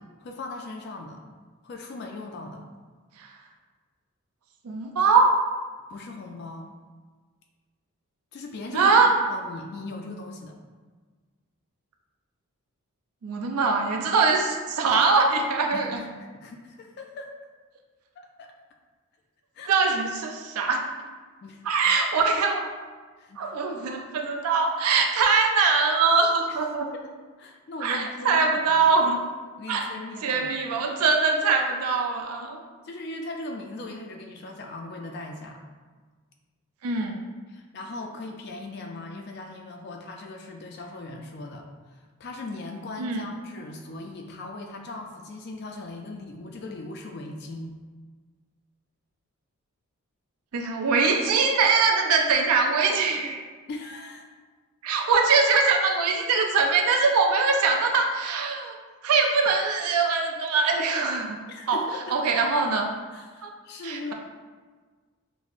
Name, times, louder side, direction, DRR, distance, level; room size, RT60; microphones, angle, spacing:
voice 1, 0.2-1.2 1.6-2.6 5.9-6.7 8.3-8.9 9.3-10.6 15.7-16.1 16.3-17.3 18.2-18.5 19.5-19.7 21.4-21.6 23.2-23.5 26.5-26.6 26.9-27.0 27.4-28.8 29.6-30.6 32.8-35.6 37.5-47.7 53.7-54.3 61.5-62.4 63.1-64.1, left 2 dB, 45° left, 2 dB, 0.3 m, -39 dB
voice 2, 4.6-5.3 8.7-9.2 13.2-16.0 19.7-20.8 21.6-22.7 23.4-26.9 27.8-29.2 29.7-29.8 30.2-32.6 36.8-37.2 43.0-43.2 50.5-53.4 54.8-58.8 59.0-61.4 61.7-61.8 62.1-62.9 63.4-63.5 63.8-64.1, right 4 dB, 85° right, 2 dB, 0.4 m, -22 dB
5.9 x 2.0 x 2.4 m, 1.4 s
head